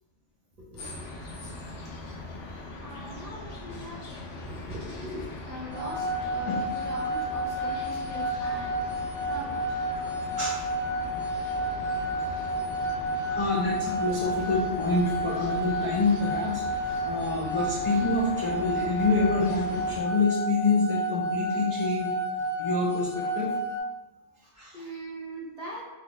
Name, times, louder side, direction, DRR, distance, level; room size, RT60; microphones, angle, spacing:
voice 1, 0.6-1.1 2.4-4.0 4.4-10.0 12.4-13.3 24.7-25.8, right 1 dB, 35° right, -5 dB, 0.9 m, -42 dB
sound 1, 0.8-20.0, left 2 dB, 85° left, 1.0 m, -40 dB
sound 2, 5.7-23.8, right 1 dB, 70° right, 0.9 m, -31 dB
voice 2, 10.0-10.7 13.3-22.1 22.6-23.5 24.6-24.8, left 3 dB, 55° left, -4 dB, 0.3 m, -27 dB
3.0 x 2.3 x 3.8 m, 1.1 s
omnidirectional pair, 1.2 m